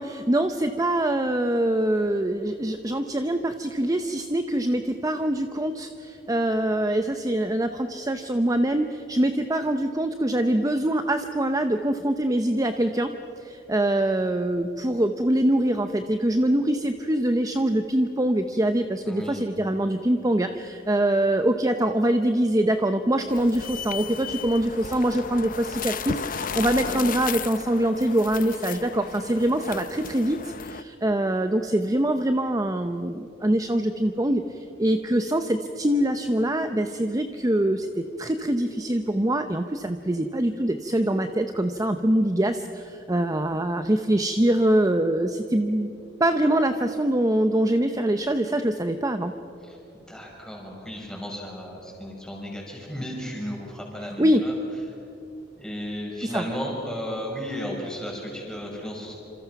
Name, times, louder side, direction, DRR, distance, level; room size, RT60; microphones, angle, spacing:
voice 1, 0.0-13.1 13.4-45.9 46.2-49.3 54.2-54.4 56.3-56.4, right 1 dB, 20° right, 8 dB, 0.7 m, -24 dB
voice 2, 19.0-19.5 49.6-54.5 55.6-59.1, equal, 5° left, -2 dB, 5.9 m, -34 dB
sound 1, 23.3-30.8, left 6 dB, 45° left, 0.6 m, -34 dB
27.5 x 27.0 x 5.9 m, 2.8 s
head